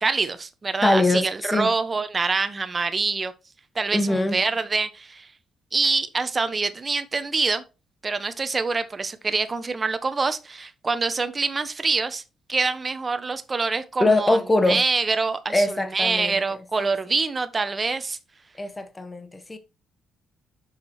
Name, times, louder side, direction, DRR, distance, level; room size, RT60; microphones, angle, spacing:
voice 1, 0.0-3.3 3.7-5.3 5.7-7.6 8.0-12.2 12.5-14.4 14.7-18.2, right 4 dB, 30° right, 0.9 m, -25 dB
voice 2, 0.8-1.7 3.9-4.4 14.0-14.8 15.5-16.9 18.6-19.6, left 2 dB, 20° left, 1.1 m, -23 dB
6.6 x 4.7 x 4.3 m
cardioid pair, 90°, 0 cm